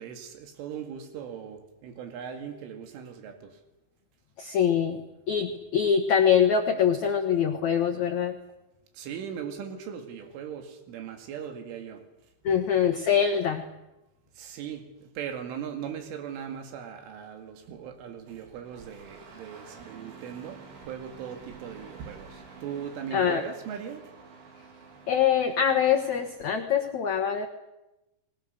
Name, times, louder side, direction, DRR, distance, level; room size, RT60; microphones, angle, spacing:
voice 1, 0.0-3.6 8.9-12.0 12.5-12.6 14.4-24.1, right 8 dB, 90° right, 6 dB, 4.7 m, -39 dB
voice 2, 4.4-5.0 5.3-8.4 12.4-13.6 23.1-23.4 25.1-27.5, left 8 dB, 70° left, 5 dB, 1.7 m, -24 dB
Engine starting, 18.2-26.4, right 4 dB, 70° right, 5.9 m, -50 dB
29.0 x 21.5 x 6.7 m, 0.98 s
omnidirectional pair, 5.5 m